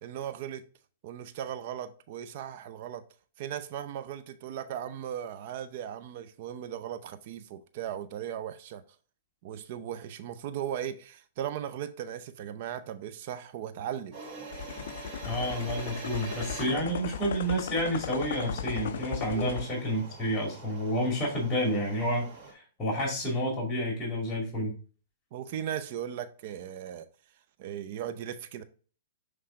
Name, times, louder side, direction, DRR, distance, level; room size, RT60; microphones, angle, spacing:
voice 1, 0.0-0.6 1.0-3.0 3.4-8.8 9.4-14.2 16.7-16.8 19.3-19.6 25.3-27.1 27.6-28.6, right 10 dB, 50° right, 0.7 m, -37 dB
sound 1, 14.1-22.5, right 4 dB, 35° right, 2.0 m, -45 dB
sound 2, 14.5-19.7, left 9 dB, 65° left, 0.3 m, -37 dB
voice 2, 15.2-24.8, equal, 15° left, 2.7 m, -30 dB
7.4 x 3.3 x 3.8 m
hypercardioid pair, 120°, 0 cm